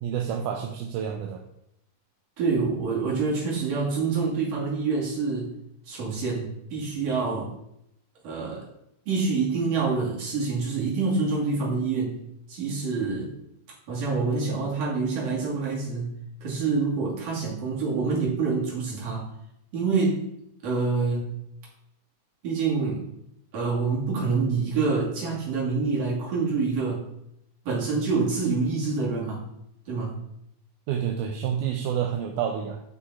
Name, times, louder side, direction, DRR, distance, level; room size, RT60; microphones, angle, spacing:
voice 1, 0.0-1.4 30.9-32.8, right 8 dB, 80° right, 3 dB, 2.2 m, -29 dB
voice 2, 2.4-5.5 5.9-7.5 8.2-8.7 9.1-12.2 12.5-13.3 13.9-16.1 16.4-19.3 19.7-20.3 20.6-21.4 22.4-23.1 23.5-27.1 27.7-29.4 29.9-30.2, right 4 dB, 50° right, -4 dB, 3.5 m, -26 dB
10.5 x 5.6 x 4.2 m, 0.78 s
omnidirectional pair, 3.8 m